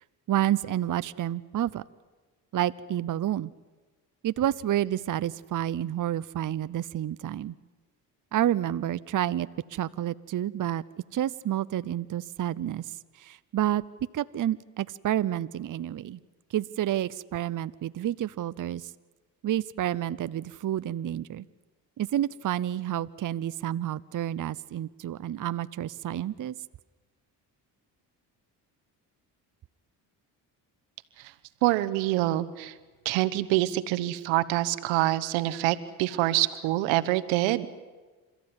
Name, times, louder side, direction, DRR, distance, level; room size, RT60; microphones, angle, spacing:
voice 1, 0.3-1.8 2.5-3.5 4.2-7.5 8.3-10.8 11.1-13.8 14.1-16.2 16.5-18.9 19.4-21.4 22.0-26.6, right 12 dB, 45° right, 15 dB, 0.7 m, -29 dB
voice 2, 31.6-32.7 33.0-37.7, right 16 dB, 85° right, 13 dB, 1.1 m, -26 dB
27.5 x 14.0 x 9.7 m, 1.3 s
supercardioid pair, 65°, 45 cm